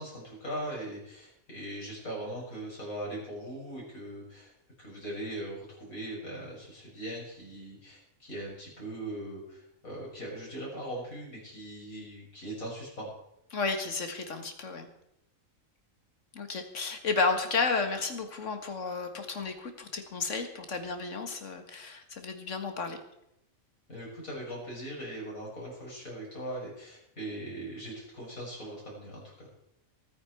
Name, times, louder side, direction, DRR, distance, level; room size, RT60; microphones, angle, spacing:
voice 1, 0.0-4.5 4.8-13.1 23.9-29.5, right 1 dB, 85° left, -4 dB, 6.8 m, -40 dB
voice 2, 13.5-14.9 16.3-23.0, left 4 dB, 60° left, 7 dB, 2.0 m, -32 dB
22.5 x 9.8 x 4.5 m, 0.80 s
omnidirectional pair, 1.4 m